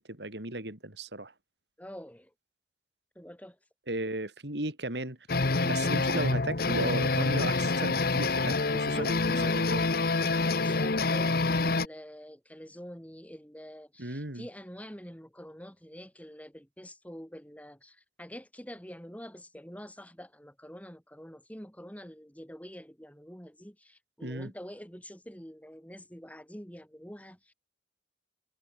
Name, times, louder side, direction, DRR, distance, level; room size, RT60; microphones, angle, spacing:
voice 1, 0.1-1.3 3.9-5.2 5.6-9.8 14.0-14.5 24.2-24.5, right 2 dB, 70° right, 4.1 m, -35 dB
voice 2, 1.8-2.3 3.1-3.6 9.2-9.7 10.2-27.5, equal, 10° left, 6.0 m, -46 dB
sound 1, 5.3-11.9, left 3 dB, 60° left, 1.1 m, -27 dB
head